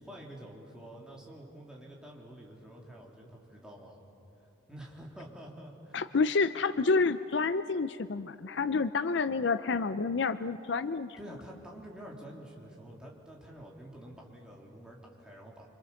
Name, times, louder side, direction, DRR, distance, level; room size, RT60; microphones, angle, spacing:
voice 1, 0.0-4.0 4.7-6.2 11.2-15.7, right 1 dB, 5° right, -3 dB, 3.3 m, -48 dB
voice 2, 5.9-11.2, left 4 dB, 60° left, 13 dB, 0.5 m, -29 dB
26.5 x 26.0 x 7.1 m, 2.8 s
head